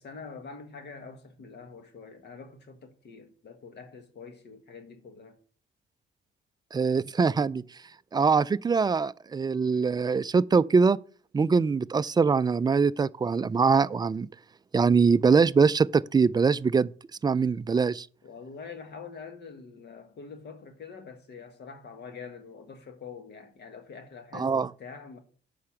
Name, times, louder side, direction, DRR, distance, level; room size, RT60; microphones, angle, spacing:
voice 1, 0.0-5.4 18.2-25.2, left 5 dB, 60° left, 1.6 m, -45 dB
voice 2, 6.7-7.6 8.1-11.0 11.3-14.3 14.7-16.9 17.2-18.1 24.3-24.7, right 5 dB, 20° right, 0.3 m, -23 dB
8.4 x 5.7 x 5.9 m
cardioid pair, 90°, 20 cm